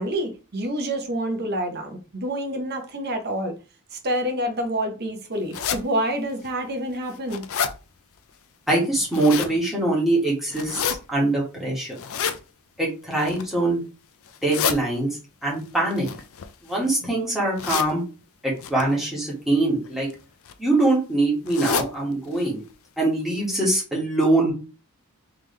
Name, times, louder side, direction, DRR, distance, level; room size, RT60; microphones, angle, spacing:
voice 1, 0.0-3.5 3.9-7.4, right 1 dB, 45° right, 1.0 m, -27 dB
sound 1, 5.5-5.8 6.4-6.5 7.0-7.7 8.9-9.5 10.5-11.0 12.0-12.4 13.1-13.5 14.3-14.8 15.9-16.9 17.6-17.9 18.6-18.8 19.8-20.1 20.5-20.6 20.8-20.9 21.5-21.9 22.3-22.4 22.7-22.8 23.4-23.5 23.8-23.9, left 7 dB, 65° left, 0.5 m, -28 dB
voice 2, 8.7-12.0 12.8-13.8 14.4-15.1 15.4-16.1 16.6-18.0 18.4-20.1 20.6-22.6 23.0-24.5, right 2 dB, ahead, 1.9 m, -23 dB
3.7 x 3.3 x 3.3 m
head